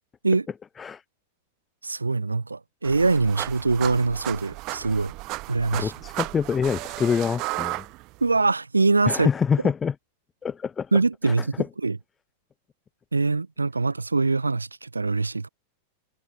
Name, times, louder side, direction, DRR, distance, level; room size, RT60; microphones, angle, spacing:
voice 1, 1.8-5.1 5.5-5.9 8.2-9.3 10.9-11.5 11.8-12.0 13.1-15.5, right 3 dB, 80° right, 0.7 m, -23 dB
sound 1, 2.8-8.4, right 23 dB, 40° right, 0.4 m, -34 dB
voice 2, 5.7-7.9 9.1-9.9 10.4-10.9 11.2-11.5, left 6 dB, 20° left, 0.5 m, -26 dB
figure-of-eight pair, 90°, 0 cm